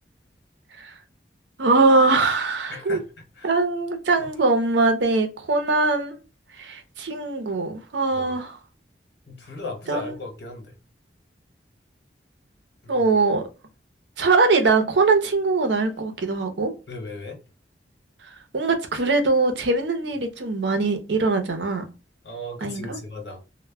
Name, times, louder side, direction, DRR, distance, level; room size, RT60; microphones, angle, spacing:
voice 1, 1.6-3.0 3.4-6.2 6.6-8.5 9.9-10.1 12.9-13.4 14.2-16.7 18.2-21.8 22.6-23.0, right 3 dB, 85° right, 0.6 m, -22 dB
voice 2, 2.7-3.1 3.4-3.5 4.2-4.3 8.1-8.4 9.3-10.7 12.8-13.1 16.9-17.4 22.2-23.4, left 2 dB, 80° left, 1.0 m, -36 dB
2.1 x 2.1 x 3.3 m
head